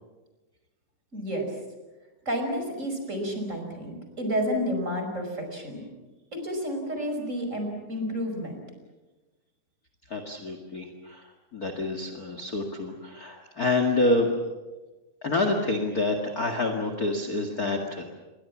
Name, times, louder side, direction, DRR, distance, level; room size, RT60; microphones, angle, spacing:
voice 1, 1.1-1.5 2.3-5.8 6.3-8.6, equal, 25° right, 4 dB, 5.7 m, -30 dB
voice 2, 10.1-14.3 15.2-18.0, left 2 dB, 35° left, 5 dB, 2.1 m, -27 dB
29.0 x 22.0 x 7.3 m, 1.2 s
omnidirectional pair, 3.5 m